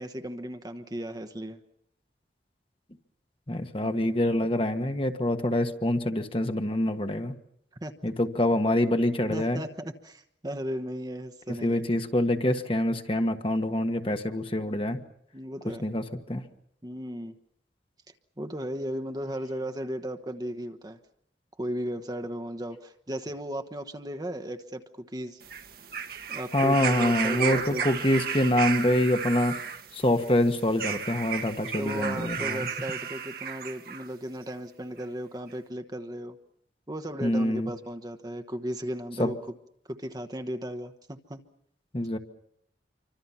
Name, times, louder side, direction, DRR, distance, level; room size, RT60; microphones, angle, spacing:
voice 1, 0.0-1.6 7.8-7.9 9.3-11.8 15.3-15.8 16.8-17.4 18.4-21.0 21.6-25.4 26.3-27.8 31.8-36.4 36.9-39.4 39.9-41.4, equal, 20° right, 7 dB, 1.1 m, -35 dB
voice 2, 3.5-7.3 8.0-9.6 11.6-15.0 15.8-16.4 26.5-29.6 29.9-32.7 37.2-37.7 39.2-39.3 41.9-42.2, left 1 dB, 30° left, 7 dB, 1.4 m, -25 dB
sound 1, 25.4-34.1 35.0-35.1, right 7 dB, 55° right, 1.7 m, -34 dB
27.5 x 25.0 x 5.7 m, 0.73 s
head